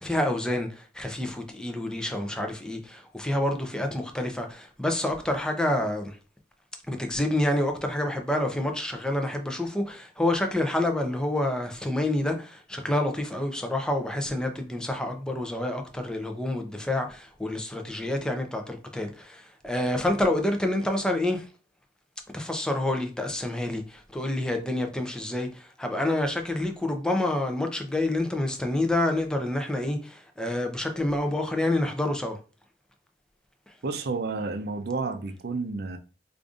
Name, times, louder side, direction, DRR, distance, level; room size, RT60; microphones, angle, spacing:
voice 1, 0.0-6.2 6.9-21.5 22.3-32.4, left 1 dB, 5° left, 0.5 m, -28 dB
voice 2, 33.8-36.0, right 3 dB, 60° right, 0.5 m, -31 dB
5.0 x 2.5 x 2.4 m
head